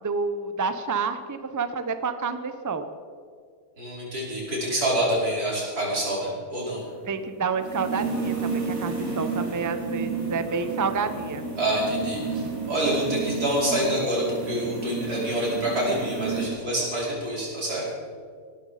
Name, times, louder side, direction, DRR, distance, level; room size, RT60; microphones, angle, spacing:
voice 1, 0.0-2.9 7.1-11.4, right 4 dB, 20° right, 9 dB, 0.6 m, -29 dB
voice 2, 3.8-6.8 11.6-17.8, right 1 dB, 90° right, -5 dB, 5.6 m, -27 dB
sound 1, 6.8-16.5, right 4 dB, 65° right, 3.7 m, -31 dB
18.0 x 13.0 x 5.0 m, 2.1 s
omnidirectional pair, 1.6 m